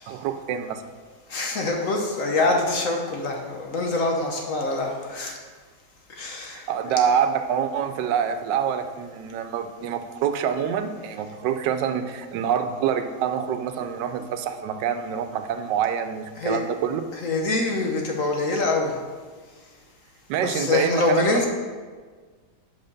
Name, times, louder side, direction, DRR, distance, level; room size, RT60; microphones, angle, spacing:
voice 1, 0.1-0.8 6.4-17.0 20.3-21.5, right 8 dB, 85° right, 8 dB, 1.2 m, -26 dB
voice 2, 1.3-5.3 6.2-6.7 16.4-16.6 17.1-18.9 20.4-21.5, left 2 dB, 60° left, 2 dB, 1.0 m, -25 dB
5.5 x 5.4 x 5.2 m, 1.5 s
omnidirectional pair, 1.9 m